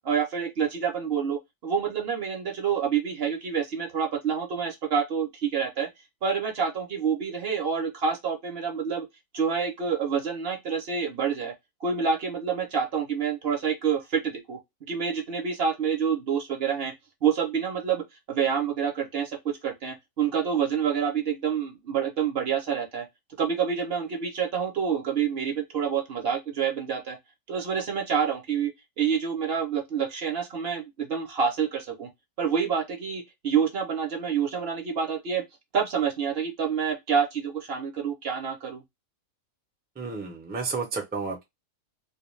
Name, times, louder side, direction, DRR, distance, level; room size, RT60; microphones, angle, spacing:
voice 1, 0.0-5.9 6.2-9.1 9.3-11.5 11.8-16.9 17.2-23.1 23.4-27.2 27.5-32.1 32.4-35.4 35.7-38.8, right 7 dB, 55° right, 0.8 m, -27 dB
voice 2, 40.0-41.4, right 4 dB, 15° right, 0.3 m, -31 dB
2.4 x 2.2 x 3.1 m
omnidirectional pair, 1.4 m